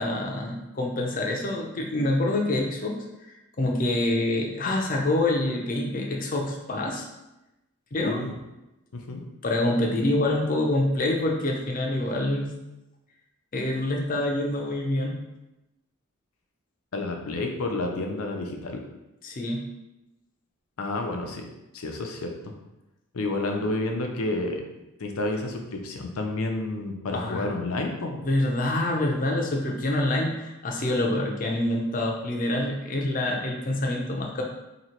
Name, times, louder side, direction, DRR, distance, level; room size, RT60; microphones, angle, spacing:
voice 1, 0.0-3.3 3.6-7.1 7.9-8.2 9.4-12.5 13.5-15.2 19.2-19.6 27.1-27.5 28.2-34.4, left 1 dB, 40° left, 1 dB, 0.6 m, -26 dB
voice 2, 16.9-18.8 20.8-21.4 21.7-22.5 23.1-24.6 25.0-28.2, left 2 dB, 80° left, 3 dB, 0.6 m, -30 dB
2.9 x 2.9 x 4.3 m, 0.96 s
head